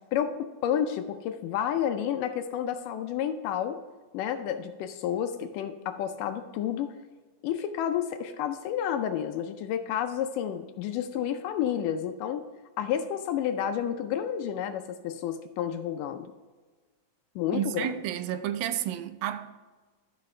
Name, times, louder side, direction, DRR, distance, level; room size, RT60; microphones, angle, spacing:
voice 1, 0.1-3.8 4.1-7.0 7.4-12.5 12.8-16.3 17.4-17.9, left 9 dB, 80° left, 2.0 m, -30 dB
voice 2, 17.5-19.6, right 11 dB, 85° right, 2.4 m, -31 dB
14.0 x 5.8 x 3.2 m
omnidirectional pair, 4.1 m